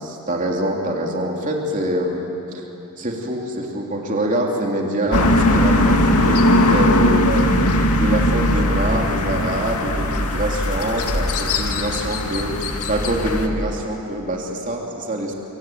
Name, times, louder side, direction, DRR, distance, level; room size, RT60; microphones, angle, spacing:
voice 1, 0.0-2.6 3.0-7.5 7.9-15.3, right 1 dB, 35° right, 0 dB, 3.3 m, -25 dB
sound 1, 5.1-13.5, left 1 dB, 90° left, 2.2 m, -19 dB
25.0 x 25.0 x 9.2 m, 2.9 s
head